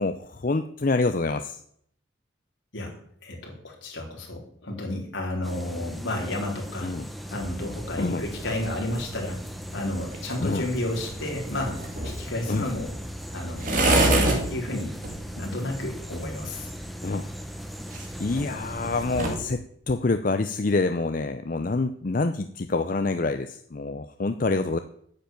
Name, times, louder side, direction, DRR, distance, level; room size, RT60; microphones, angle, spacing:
voice 1, 0.0-1.6 6.8-7.1 8.0-8.2 10.4-10.7 12.5-12.7 17.0-17.3 18.2-24.8, left 3 dB, 45° left, 8 dB, 0.5 m, -26 dB
voice 2, 2.7-6.9 7.3-9.4 9.7-11.8 12.0-12.9 13.3-15.0 15.4-16.7, left 1 dB, 75° left, 0 dB, 4.0 m, -32 dB
sound 1, 5.4-19.4, equal, ahead, 0.8 m, -39 dB
sound 2, 7.4-19.5, right 2 dB, 40° right, 2.3 m, -31 dB
9.7 x 7.1 x 9.1 m, 0.67 s
head